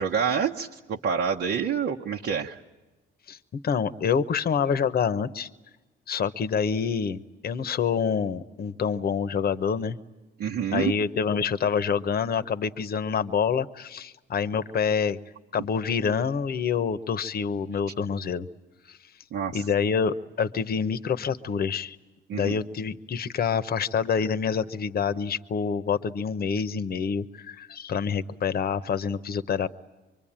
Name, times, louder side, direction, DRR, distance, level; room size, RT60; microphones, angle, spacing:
voice 1, 0.0-2.6 10.4-10.9 19.3-19.6 22.3-22.6, right 7 dB, 70° right, 0 dB, 1.1 m, -27 dB
voice 2, 3.3-5.5 6.1-10.0 10.7-15.2 15.5-18.5 18.9-19.0 19.5-22.0 22.3-29.7, left 6 dB, 50° left, 12 dB, 0.9 m, -27 dB
25.0 x 23.5 x 8.8 m, 1.1 s
cardioid pair, 90°, 20 cm